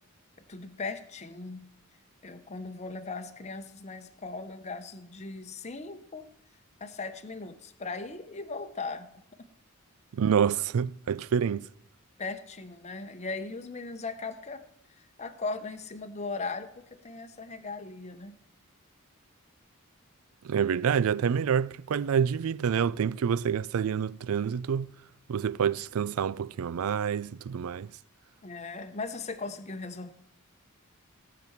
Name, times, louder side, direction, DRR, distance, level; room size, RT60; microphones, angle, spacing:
voice 1, 0.5-1.7 2.2-6.3 6.8-9.1 12.2-14.6 15.0-18.3 28.4-30.1, left 3 dB, 30° left, 0.8 m, -38 dB
voice 2, 10.1-11.7 20.4-24.9 25.3-27.9, right 7 dB, 75° right, 0.4 m, -27 dB
17.0 x 5.9 x 7.2 m
head